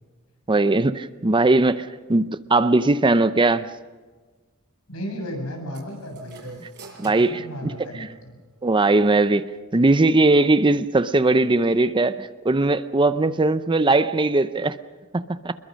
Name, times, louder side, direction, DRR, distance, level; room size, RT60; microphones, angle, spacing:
voice 1, 0.5-3.7 6.6-6.7 7.0-8.1 8.6-9.4 9.7-14.8 15.1-15.5, right 2 dB, 20° right, 0.6 m, -20 dB
voice 2, 4.9-6.6 7.0-8.3, equal, 75° left, 7.6 m, -34 dB
sound 1, 5.7-8.4, right 2 dB, 55° right, 6.0 m, -45 dB
27.0 x 22.0 x 6.4 m
head